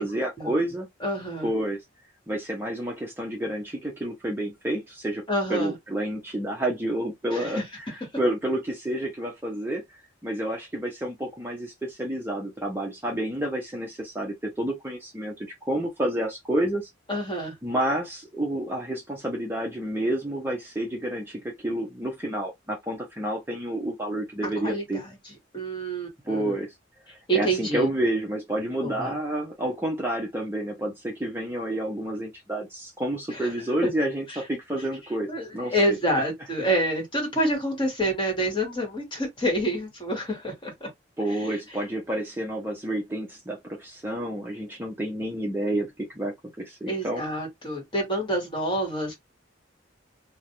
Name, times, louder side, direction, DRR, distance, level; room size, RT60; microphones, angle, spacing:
voice 1, 0.0-0.9 1.4-1.8 2.3-5.2 5.5-7.6 7.9-16.9 17.6-25.0 26.2-26.7 27.3-36.0 41.2-47.2, right 1 dB, 10° right, 0.5 m, -29 dB
voice 2, 1.0-1.5 5.3-5.7 7.3-7.6 17.1-17.5 24.4-25.2 25.5-26.5 27.3-27.9 28.8-29.2 33.3-33.5 34.3-34.4 35.3-40.9 41.3-41.6 46.9-49.1, right 1 dB, 25° left, 1.2 m, -28 dB
2.4 x 2.0 x 2.8 m
head